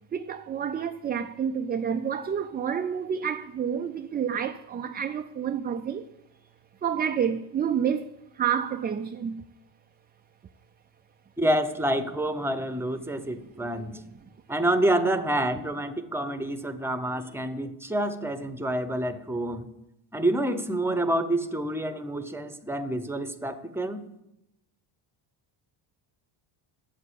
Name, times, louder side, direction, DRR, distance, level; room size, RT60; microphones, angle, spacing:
voice 1, 0.1-6.0 6.8-8.1 8.3-9.4, right 8 dB, 25° right, 0.3 m, -29 dB
voice 2, 11.4-14.0 14.5-19.7 20.1-24.0, right 1 dB, 5° right, 0.8 m, -28 dB
8.7 x 7.4 x 8.4 m
cardioid pair, 110°, 48 cm